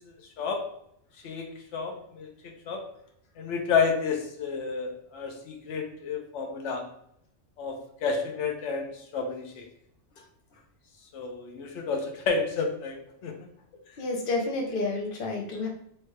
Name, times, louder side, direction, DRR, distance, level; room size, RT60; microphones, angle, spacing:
voice 1, 1.2-2.3 2.7-2.8 3.4-6.8 7.6-9.7 11.1-13.3, left 5 dB, 75° left, 2 dB, 1.1 m, -30 dB
voice 2, 14.0-15.7, left 3 dB, 50° left, 0 dB, 1.0 m, -30 dB
3.3 x 3.2 x 3.1 m, 0.72 s
omnidirectional pair, 1.3 m